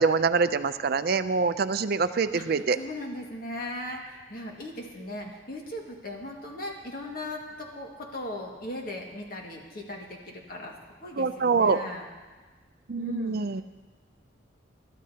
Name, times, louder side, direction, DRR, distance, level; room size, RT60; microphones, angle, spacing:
voice 1, 0.0-2.8 11.2-11.8 12.9-13.6, right 4 dB, 50° right, 11 dB, 0.5 m, -25 dB
voice 2, 2.3-10.7 11.0-12.0 13.0-13.6, left 1 dB, 45° left, 0 dB, 1.9 m, -38 dB
21.5 x 12.5 x 2.8 m, 1.3 s
head